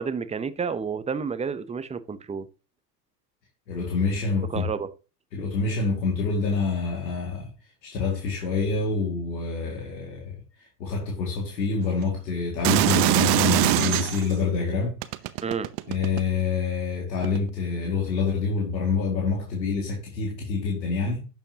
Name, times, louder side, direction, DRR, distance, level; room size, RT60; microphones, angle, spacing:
voice 1, 0.0-2.5 4.5-4.9 15.4-15.7, right 6 dB, 15° right, 0.6 m, -30 dB
voice 2, 3.7-4.7 5.3-7.5 7.8-10.3 10.8-15.0 15.9-21.3, left 4 dB, 85° left, 2.3 m, -26 dB
sound 1, 12.6-14.3 15.0-16.4 17.2-17.4, right 18 dB, 50° right, 0.8 m, -22 dB
11.5 x 7.1 x 2.8 m
hypercardioid pair, 90°, 50 cm